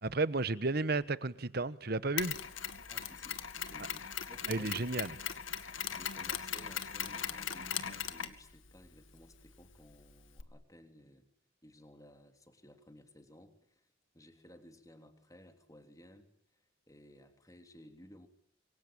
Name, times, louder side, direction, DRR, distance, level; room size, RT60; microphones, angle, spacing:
voice 1, 0.0-2.4 4.5-5.1, right 3 dB, 50° right, 1.2 m, -33 dB
Mechanisms, 2.2-10.4, left 9 dB, 80° left, 2.0 m, -40 dB
voice 2, 2.9-5.2 5.9-11.3 11.6-13.9 14.1-18.3, left 1 dB, 15° left, 3.3 m, -57 dB
27.0 x 23.5 x 8.9 m
head